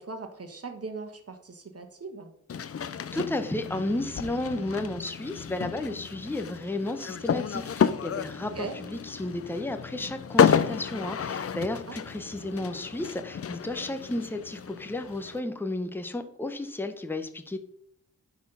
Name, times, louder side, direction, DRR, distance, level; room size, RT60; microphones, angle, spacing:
voice 1, 0.0-2.3 8.5-8.7 11.9-12.1, right 4 dB, 45° right, 5 dB, 1.4 m, -39 dB
sound 1, 2.5-15.4, left 7 dB, 45° left, 0.5 m, -30 dB
voice 2, 3.1-17.6, left 2 dB, 5° left, 7 dB, 0.8 m, -33 dB
10.0 x 4.2 x 5.4 m, 0.72 s
wide cardioid pair, 90°, 33 cm